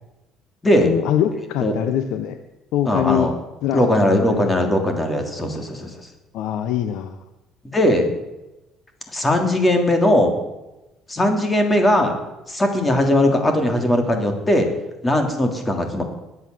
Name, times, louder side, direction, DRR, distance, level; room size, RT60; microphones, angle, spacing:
voice 1, 0.9-2.4 2.7-3.3 3.6-4.5 6.3-7.2, left 10 dB, 80° left, 8 dB, 1.0 m, -23 dB
voice 2, 2.9-3.3 3.7-6.1 7.6-8.1 9.1-10.3 11.1-12.1 12.5-14.7 15.0-16.0, left 1 dB, 15° left, 4 dB, 3.1 m, -19 dB
20.5 x 8.3 x 7.9 m, 1.0 s
cardioid pair, 115°, 0 cm